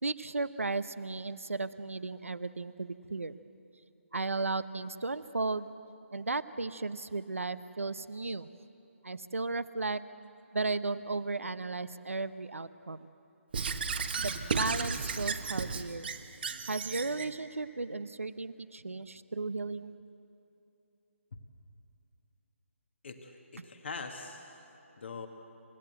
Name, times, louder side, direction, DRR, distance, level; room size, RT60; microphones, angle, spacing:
voice 1, 0.0-3.4 4.1-5.7 6.1-8.5 9.0-10.0 10.5-13.1 14.2-16.1 16.7-19.9 23.6-23.7, right 3 dB, 70° right, 14 dB, 0.9 m, -35 dB
Squeak / Writing, 13.5-17.3, right 5 dB, 45° right, 1.3 m, -34 dB
voice 2, 23.0-24.5 25.0-25.3, left 4 dB, 50° left, 5 dB, 1.7 m, -42 dB
29.0 x 15.0 x 8.0 m, 2.9 s
figure-of-eight pair, 145°, 7 cm